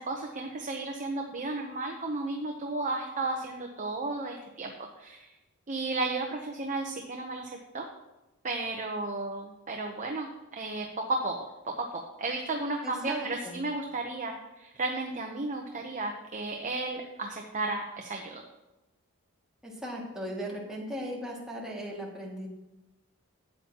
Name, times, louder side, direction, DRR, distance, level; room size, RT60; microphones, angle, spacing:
voice 1, 0.0-5.3 5.7-7.9 8.4-11.3 11.7-18.4, right 2 dB, 35° right, 2 dB, 0.8 m, -34 dB
voice 2, 12.8-13.6 19.6-22.5, equal, 5° right, -4 dB, 2.1 m, -37 dB
13.0 x 8.6 x 2.9 m, 1.0 s
head